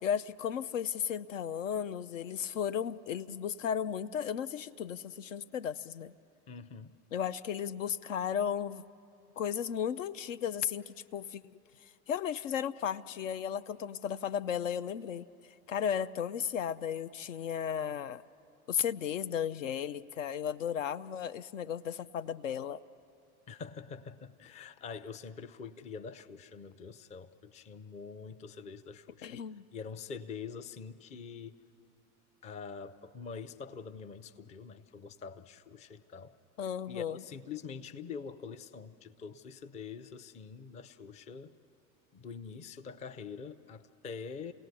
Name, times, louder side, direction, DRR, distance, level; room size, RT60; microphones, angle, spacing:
voice 1, 0.0-6.1 7.1-8.8 9.4-11.4 11.8-15.2 15.7-18.2 18.7-22.8 29.2-29.6 36.6-37.2, left 8 dB, 65° left, 14 dB, 0.5 m, -35 dB
voice 2, 6.5-7.0 23.5-29.3 29.7-31.6 32.4-36.3 36.9-41.5 42.1-44.5, left 5 dB, 15° left, 11 dB, 0.5 m, -45 dB
29.0 x 18.0 x 6.8 m, 2.8 s
figure-of-eight pair, 80°, 43 cm